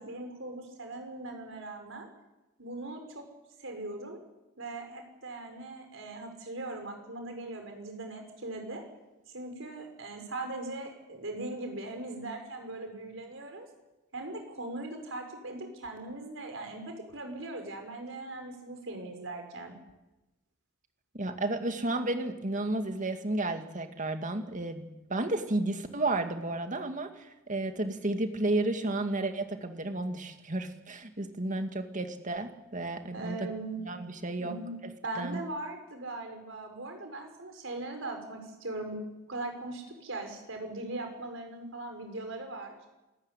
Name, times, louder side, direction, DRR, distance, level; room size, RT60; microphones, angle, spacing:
voice 1, 0.0-2.1 2.6-3.3 3.6-4.2 4.6-8.8 9.3-13.7 14.1-19.7 33.1-33.8 34.4-34.8 35.0-39.0 39.3-42.8, right 2 dB, 70° right, 4 dB, 5.6 m, -40 dB
voice 2, 21.1-33.4 33.9-34.6 34.8-34.9 35.2-35.4, right 2 dB, 40° right, 7 dB, 2.2 m, -32 dB
27.0 x 14.0 x 9.9 m, 1.0 s
head